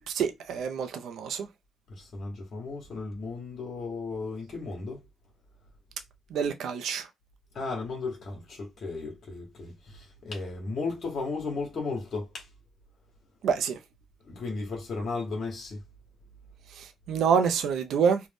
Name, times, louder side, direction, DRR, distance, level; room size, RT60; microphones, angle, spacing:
voice 1, 0.1-1.5 6.3-7.1 13.4-13.8 16.8-18.2, right 6 dB, 75° right, 0.4 m, -27 dB
voice 2, 2.0-5.0 7.5-12.5 14.2-15.8, left 3 dB, 45° left, 0.9 m, -35 dB
2.5 x 2.1 x 3.3 m
cardioid pair, 90°, 0 cm